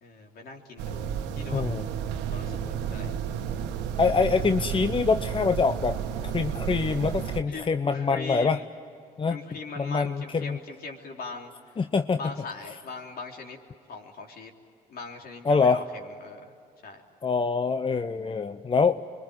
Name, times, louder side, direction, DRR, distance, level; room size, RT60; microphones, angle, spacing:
voice 1, 0.0-2.0 2.3-3.1 7.5-8.6 9.3-11.5 12.2-13.6 13.9-14.5 14.9-16.5 16.8-17.0, left 4 dB, 60° left, 2 dB, 3.6 m, -40 dB
sound 1, 0.8-7.4, right 8 dB, 80° right, 1.4 m, -32 dB
voice 2, 1.5-1.9 4.0-6.0 6.2-8.6 9.2-9.4 9.8-10.6 11.8-12.2 15.4-15.8 17.2-19.0, left 4 dB, 30° left, 10 dB, 0.8 m, -25 dB
25.5 x 22.5 x 9.6 m, 2.4 s
supercardioid pair, 60°, 18 cm